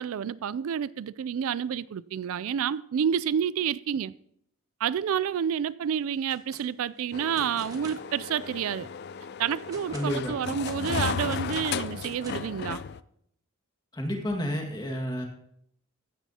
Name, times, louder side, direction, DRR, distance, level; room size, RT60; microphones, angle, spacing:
voice 1, 0.0-4.1 4.8-8.9 9.4-12.8, right 8 dB, 75° right, 0.3 m, -29 dB
sound 1, 6.1-6.6 6.9-8.1 8.6-8.7 9.2-10.1 10.6-12.6, right 2 dB, 15° right, 1.2 m, -48 dB
sound 2, 7.1-13.0, left 6 dB, 50° left, 0.4 m, -34 dB
voice 2, 9.9-10.3 13.9-15.2, equal, 20° left, 1.8 m, -30 dB
15.5 x 10.5 x 2.8 m
head